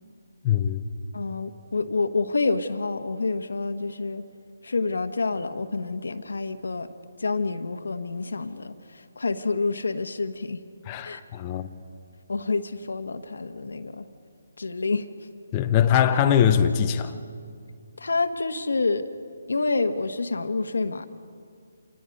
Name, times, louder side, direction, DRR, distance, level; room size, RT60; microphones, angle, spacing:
voice 1, 0.4-0.9 10.9-11.7 15.5-17.2, left 9 dB, 20° left, 0.7 m, -22 dB
voice 2, 1.1-4.2 4.6-6.9 7.2-10.6 11.0-11.2 12.3-14.1 14.6-15.1 18.0-19.1 19.5-21.1, left 3 dB, 85° left, 1.3 m, -28 dB
27.0 x 19.5 x 5.4 m
hypercardioid pair, 165°, 0 cm